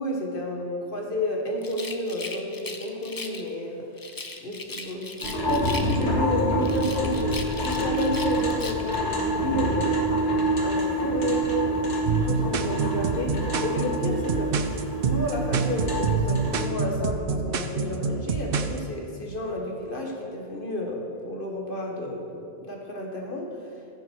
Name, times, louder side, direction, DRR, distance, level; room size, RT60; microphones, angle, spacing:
voice 1, 0.0-3.9 4.4-10.1 10.6-14.5 15.0-23.6, left 1 dB, 50° left, 0 dB, 1.7 m, -31 dB
Rattle, 1.6-3.5 4.0-6.2 6.6-9.0, left 3 dB, 25° left, 0.6 m, -38 dB
sound 1, 5.2-16.7, right 1 dB, 90° left, 2.2 m, -27 dB
sound 2, 12.1-18.8, right 5 dB, 60° right, 0.8 m, -27 dB
15.0 x 10.0 x 4.6 m, 2.4 s
omnidirectional pair, 1.2 m